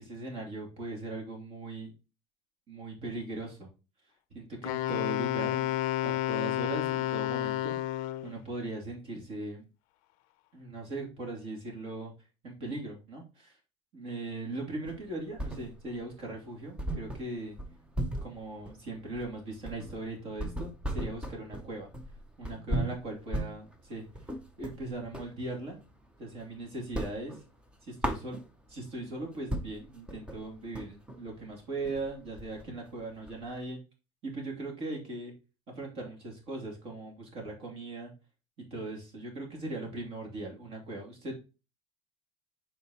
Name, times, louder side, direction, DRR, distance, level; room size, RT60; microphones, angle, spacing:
voice 1, 0.0-1.9 2.7-3.7 4.3-5.7 6.0-7.8 8.2-9.7 10.5-12.1 12.4-13.6 13.9-17.6 18.2-21.9 22.4-24.1 24.6-25.8 26.2-27.4 27.8-28.4 28.7-33.8 34.2-35.3 35.7-38.1 38.7-41.4, right 2 dB, 40° right, 1 dB, 2.5 m, -39 dB
Wind instrument woodwind instrument, 4.6-8.4, left 14 dB, 65° left, 0.5 m, -30 dB
sound 1, 14.8-16.0 16.3-16.4 16.8-25.4 25.7-26.5 26.8-28.8 29.2-29.3 29.5-33.6, right 1 dB, 5° right, 0.6 m, -37 dB
7.1 x 4.6 x 2.8 m, 0.31 s
cardioid pair, 165°, 16 cm